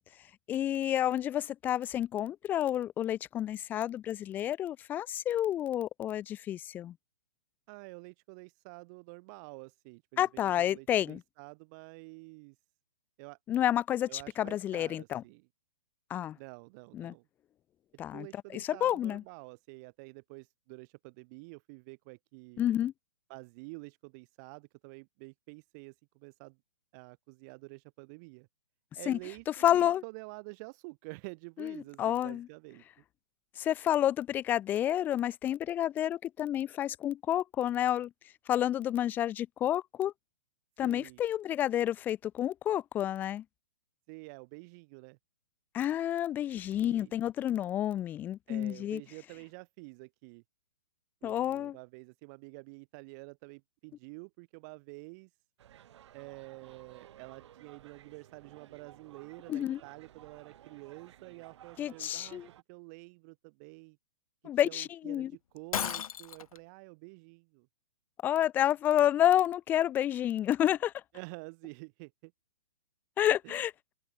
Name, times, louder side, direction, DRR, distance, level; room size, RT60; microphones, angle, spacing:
voice 1, 0.5-6.9 10.2-11.2 13.5-15.2 16.1-16.4 16.9-17.1 18.0-18.3 18.5-19.2 22.6-22.9 29.1-29.2 29.6-30.0 31.6-32.5 33.6-38.1 38.5-40.1 40.8-43.4 45.7-49.0 51.2-51.8 59.5-59.8 61.8-62.5 64.4-65.3 68.2-70.9 73.2-73.7, left 11 dB, 10° left, 0.4 m, -29 dB
voice 2, 7.7-12.6 13.2-13.4 14.1-15.5 16.4-17.3 18.1-22.7 23.3-26.6 26.9-28.5 28.9-32.8 40.8-41.2 44.1-45.2 46.8-47.1 48.5-50.4 51.2-55.3 56.1-62.4 62.7-64.0 64.6-67.7 71.1-72.3 73.4-73.6, right 30 dB, 30° right, 4.4 m, -49 dB
sound 1, 55.6-62.6, right 11 dB, 55° right, 4.0 m, -56 dB
Shatter, 65.7-66.6, left 9 dB, 80° left, 0.8 m, -34 dB
open air
hypercardioid pair, 155°, 18 cm